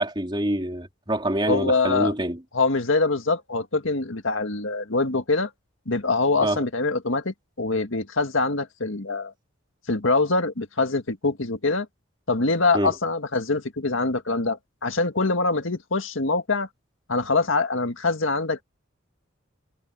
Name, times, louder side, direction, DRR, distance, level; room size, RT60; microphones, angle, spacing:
voice 1, 0.0-2.4 6.4-6.6 12.7-12.9, right 1 dB, 25° right, 3.6 m, -26 dB
voice 2, 1.5-2.1 2.5-5.5 5.9-9.3 9.9-11.9 12.3-16.7 17.1-18.6, left 3 dB, 80° left, 1.8 m, -24 dB
head